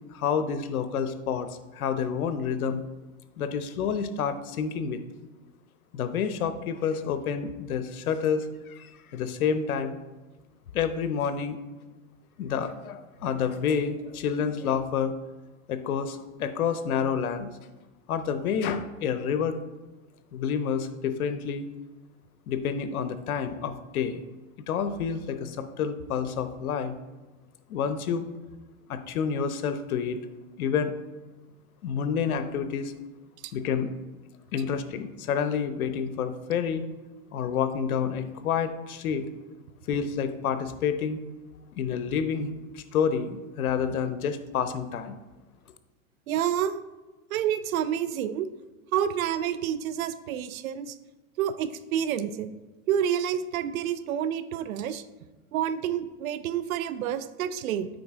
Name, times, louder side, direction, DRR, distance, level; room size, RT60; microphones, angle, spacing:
voice 1, 0.1-2.8 3.4-5.0 5.9-10.0 10.7-11.6 12.4-15.1 15.7-17.5 18.1-19.6 20.3-21.6 22.5-24.2 24.7-26.9 27.7-28.3 28.9-30.2 30.6-30.9 31.8-32.9 33.5-33.9 34.5-36.9 37.3-39.3 39.9-41.2 41.8-45.2, left 7 dB, 90° left, 10 dB, 0.8 m, -29 dB
voice 2, 46.3-46.8 47.3-48.5 48.9-51.0 51.4-52.5 52.9-55.0 55.5-57.9, right 9 dB, 75° right, 14 dB, 0.6 m, -28 dB
7.8 x 5.3 x 3.6 m, 1.2 s
hypercardioid pair, 130°, 42 cm